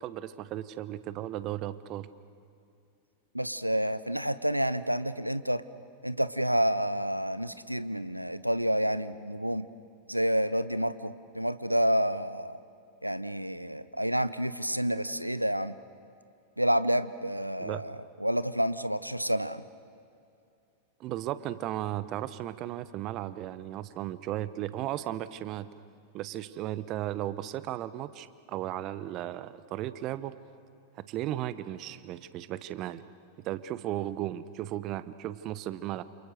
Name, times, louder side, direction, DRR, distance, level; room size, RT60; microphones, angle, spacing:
voice 1, 0.0-2.1 17.6-17.8 21.0-25.7 26.1-30.3 31.1-33.1 33.4-36.0, right 13 dB, 40° right, 15 dB, 1.0 m, -35 dB
voice 2, 3.3-5.6 6.0-9.7 10.1-12.6 13.0-15.7 16.6-19.6, equal, 90° right, 15 dB, 0.8 m, -29 dB
28.5 x 28.0 x 6.6 m, 2.5 s
figure-of-eight pair, 90°, 0 cm